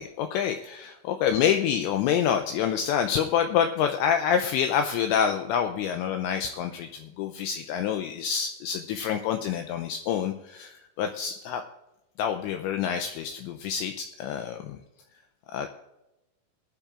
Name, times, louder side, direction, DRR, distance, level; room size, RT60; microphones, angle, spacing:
voice 1, 0.0-11.6 12.2-14.8 15.5-15.7, left 8 dB, 80° left, 6 dB, 2.6 m, -27 dB
19.5 x 12.0 x 2.5 m, 0.95 s
omnidirectional pair, 5.7 m